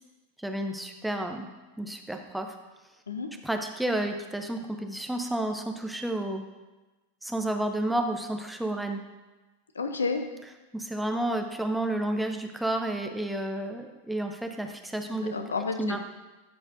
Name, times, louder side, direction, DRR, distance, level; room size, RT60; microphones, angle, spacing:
voice 1, 0.4-1.5 1.8-2.5 3.4-6.5 7.2-9.0 10.7-15.3 15.8-16.0, right 1 dB, 5° right, 4 dB, 0.6 m, -31 dB
voice 2, 9.7-10.2 15.1-16.0, left 4 dB, 75° left, 7 dB, 0.5 m, -31 dB
11.5 x 4.3 x 2.6 m, 1.2 s
figure-of-eight pair, 90°, 0 cm